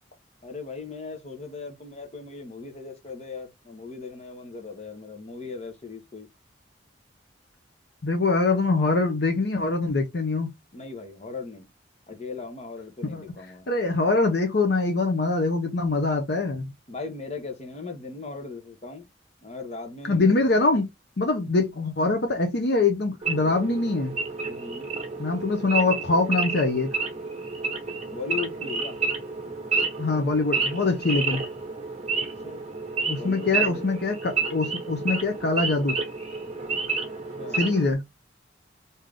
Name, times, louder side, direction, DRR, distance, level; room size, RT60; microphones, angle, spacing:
voice 1, 0.4-6.3 10.7-11.7 12.1-13.7 16.9-19.1 19.4-20.5 20.7-20.8 24.4-24.9 28.1-29.0 32.2-32.6 33.2-33.9 37.4-37.7, left 4 dB, 35° left, 0.9 m, -38 dB
voice 2, 8.0-10.5 13.0-13.2 13.7-16.7 20.1-20.9 21.2-24.2 25.2-27.0 30.0-31.4 33.0-36.0 37.5-38.0, left 3 dB, 60° left, 0.7 m, -24 dB
Wild animals / Idling, 23.2-37.9, right 4 dB, 35° right, 1.0 m, -30 dB
3.7 x 2.8 x 3.3 m
head